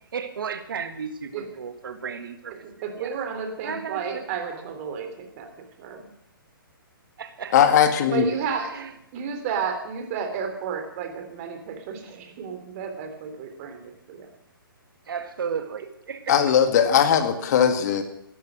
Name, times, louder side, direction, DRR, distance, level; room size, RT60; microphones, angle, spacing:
voice 1, 0.1-2.6 2.9-3.2 3.6-4.2 4.5-4.9 7.2-7.6 8.6-8.9 15.1-16.4, right 6 dB, 65° right, 9 dB, 1.7 m, -34 dB
voice 2, 2.8-5.5 5.8-6.1 8.1-8.8 9.1-14.3, right 6 dB, 35° right, 6 dB, 3.6 m, -32 dB
voice 3, 7.5-8.3 16.3-18.0, left 8 dB, 50° left, 8 dB, 2.0 m, -19 dB
16.5 x 13.0 x 6.3 m, 0.74 s
hypercardioid pair, 135°, 12 cm